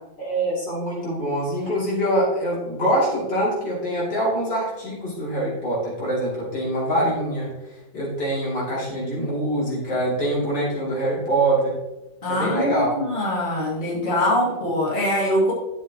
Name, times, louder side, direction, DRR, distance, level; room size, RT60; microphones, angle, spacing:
voice 1, 0.2-7.5 7.9-11.7 12.3-13.0, right 1 dB, 70° left, -6 dB, 3.7 m, -24 dB
voice 2, 12.2-15.5, left 1 dB, 25° left, -6 dB, 2.8 m, -23 dB
11.0 x 8.1 x 3.1 m, 1.1 s
omnidirectional pair, 2.0 m